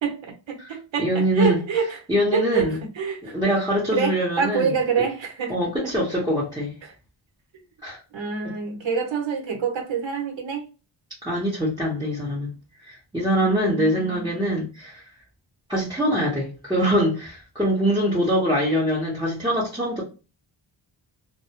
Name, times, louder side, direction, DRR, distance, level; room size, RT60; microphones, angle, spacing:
voice 1, 0.0-2.0 2.3-3.4 3.9-6.2 8.1-10.7 13.4-14.4, right 6 dB, 75° right, 0.9 m, -27 dB
voice 2, 0.6-1.6 2.1-2.8 3.2-4.7 5.5-6.7 7.8-8.0 8.4-8.5 11.2-12.5 12.9-15.0 15.7-20.0, equal, 10° right, 0.9 m, -23 dB
2.2 x 2.1 x 2.7 m
cardioid pair, 70°, 46 cm